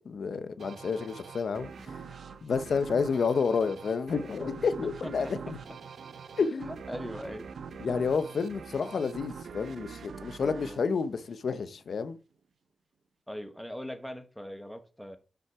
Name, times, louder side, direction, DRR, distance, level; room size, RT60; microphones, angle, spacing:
voice 1, 0.1-2.0 2.4-5.6 6.4-6.7 7.8-12.2, left 5 dB, 75° left, 0.7 m, -30 dB
sound 1, 0.6-11.8, right 6 dB, 90° right, 0.7 m, -44 dB
voice 2, 6.4-7.5 10.6-10.8 13.3-15.2, equal, 5° left, 1.2 m, -40 dB
6.4 x 5.5 x 4.6 m
wide cardioid pair, 105°, 0 cm